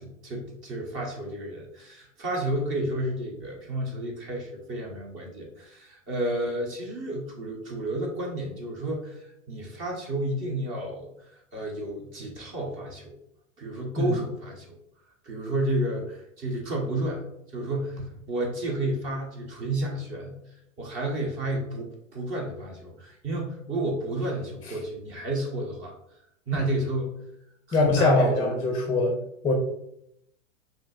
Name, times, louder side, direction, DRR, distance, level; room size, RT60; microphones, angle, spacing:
voice 1, 0.0-13.2 13.6-14.8 15.2-17.3 17.5-25.9 26.5-27.2 27.7-28.5, right 1 dB, 30° right, 0 dB, 1.4 m, -31 dB
voice 2, 27.7-29.2 29.4-29.5, left 2 dB, 10° left, 1 dB, 0.6 m, -22 dB
5.1 x 3.0 x 2.6 m, 0.77 s
hypercardioid pair, 105°, 39 cm